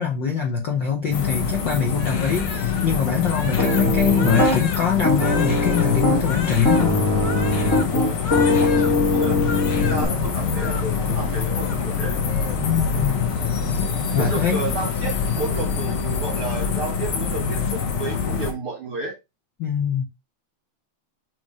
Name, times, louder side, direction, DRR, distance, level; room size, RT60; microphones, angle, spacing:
voice 1, 0.0-7.0 12.6-13.2 13.8-14.6 19.6-20.0, left 7 dB, 65° left, 1.1 m, -23 dB
sound 1, 1.1-18.5, left 6 dB, 80° left, 3.0 m, -25 dB
Crying sobbing, 2.0-9.0 9.3-10.1 10.3-10.8 11.3-12.7 13.0-13.2 13.5-14.0, left 5 dB, 50° left, 1.5 m, -35 dB
Piano, 3.6-4.6 5.0-6.3 6.6-10.0, left 2 dB, 20° left, 0.5 m, -21 dB
voice 2, 7.8-9.4 9.7-12.2 14.1-19.2, right 3 dB, 70° right, 1.3 m, -32 dB
6.9 x 3.1 x 4.8 m
omnidirectional pair, 3.5 m